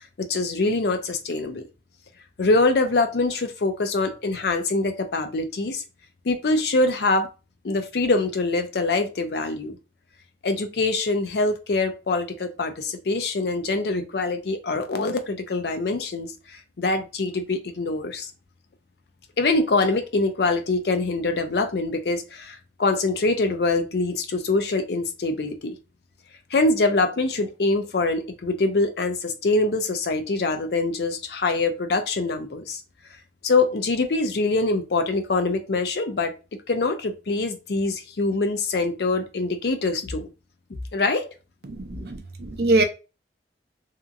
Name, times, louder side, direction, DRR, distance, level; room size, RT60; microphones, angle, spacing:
voice 1, 0.2-1.7 2.4-5.8 6.2-7.3 7.6-9.8 10.4-18.3 19.4-25.7 26.5-32.8 33.4-36.3 36.7-40.3 40.9-41.3, left 3 dB, 60° left, 0.5 m, -24 dB
voice 2, 41.7-42.8, right 2 dB, 55° right, 0.5 m, -23 dB
2.8 x 2.5 x 2.4 m
head